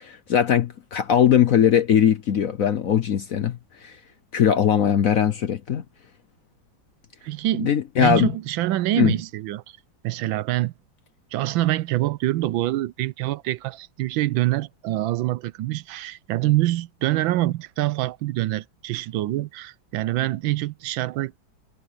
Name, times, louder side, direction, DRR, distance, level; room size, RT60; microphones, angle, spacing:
voice 1, 0.0-4.0 4.3-5.8 7.6-8.3 9.0-9.1, left 9 dB, 60° left, 1.0 m, -20 dB
voice 2, 7.2-9.8 10.0-10.7 11.3-21.3, right 15 dB, 80° right, 1.4 m, -25 dB
omnidirectional pair, 2.2 m